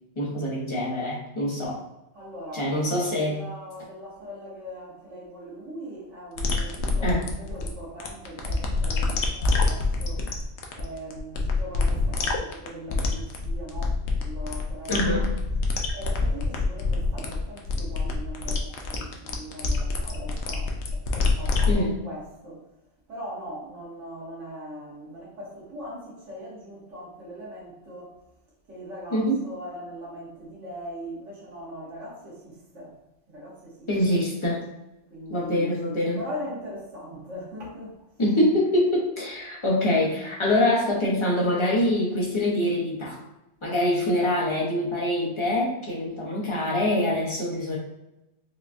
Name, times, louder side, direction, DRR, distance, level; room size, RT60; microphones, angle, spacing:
voice 1, 0.2-1.8 2.5-3.4 7.0-7.3 14.9-15.3 21.7-22.0 29.1-29.4 33.9-34.6 35.3-36.2 38.2-43.2 43.6-47.8, left 1 dB, 30° left, -4 dB, 0.9 m, -24 dB
voice 2, 2.1-10.3 10.7-15.2 15.9-22.6 23.1-28.1 28.7-33.0 33.3-34.2 35.1-38.0, equal, 90° right, -6 dB, 1.8 m, -40 dB
sound 1, 6.4-21.7, left 3 dB, 70° left, 0.9 m, -26 dB
4.8 x 2.3 x 2.5 m, 0.93 s
omnidirectional pair, 1.2 m